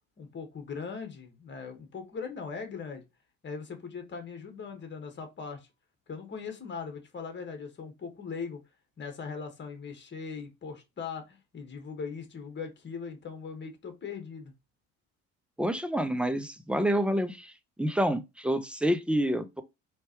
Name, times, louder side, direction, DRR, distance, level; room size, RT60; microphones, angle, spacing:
voice 1, 0.2-3.0 3.4-5.6 6.1-8.6 9.0-14.5, left 5 dB, 35° left, 1.7 m, -40 dB
voice 2, 15.6-17.5 17.8-19.6, equal, 5° right, 0.6 m, -28 dB
4.4 x 3.3 x 3.0 m
supercardioid pair, 90°, 32 cm